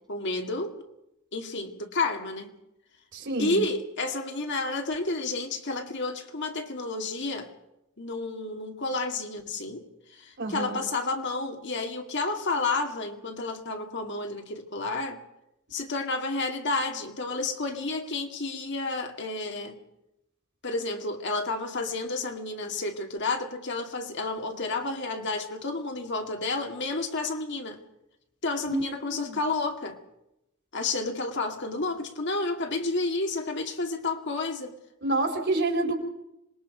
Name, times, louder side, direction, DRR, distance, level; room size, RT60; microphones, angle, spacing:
voice 1, 0.1-0.8 1.3-2.5 3.4-7.5 8.0-9.9 10.1-15.2 15.7-19.7 20.6-27.8 28.4-30.0 30.7-34.7, left 3 dB, 55° left, 2.3 m, -31 dB
voice 2, 3.1-3.6 10.4-10.8 28.7-29.4 35.0-36.0, right 2 dB, 55° right, 4.1 m, -28 dB
26.5 x 21.0 x 5.1 m
head